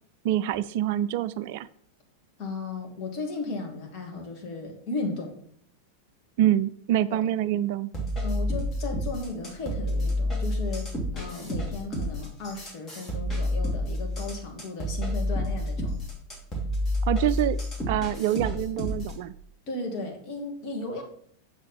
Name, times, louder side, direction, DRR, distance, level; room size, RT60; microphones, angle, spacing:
voice 1, 0.2-1.7 6.4-7.9 17.0-17.6 17.9-19.3, right 12 dB, 50° right, 16 dB, 0.3 m, -26 dB
voice 2, 2.4-5.4 7.1-7.2 8.2-10.9 11.1-16.0 19.7-21.0, left 3 dB, 40° left, 2 dB, 2.1 m, -35 dB
sound 1, 7.9-19.2, left 1 dB, 20° left, 2.6 m, -30 dB
7.3 x 6.7 x 4.1 m, 0.63 s
figure-of-eight pair, 90°, 0 cm